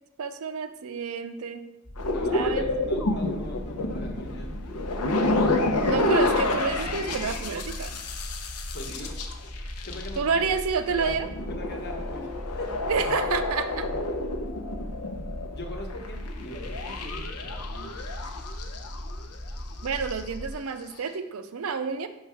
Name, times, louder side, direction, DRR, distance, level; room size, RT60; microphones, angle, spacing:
voice 1, 0.2-1.7 2.3-2.7 5.9-8.0 10.2-11.3 12.9-13.9 19.8-22.1, right 5 dB, 70° right, 9 dB, 0.5 m, -29 dB
sound 1, 1.8-20.5, equal, 5° left, 1.0 m, -38 dB
sound 2, 2.0-10.4 10.9-19.6 19.8-20.3, left 2 dB, 85° left, 0.8 m, -29 dB
voice 2, 2.1-4.7 8.7-9.2 9.8-10.5 11.0-11.2 11.5-12.7 15.5-18.1, left 1 dB, 45° left, 2 dB, 1.1 m, -40 dB
4.8 x 4.6 x 5.7 m, 0.90 s
head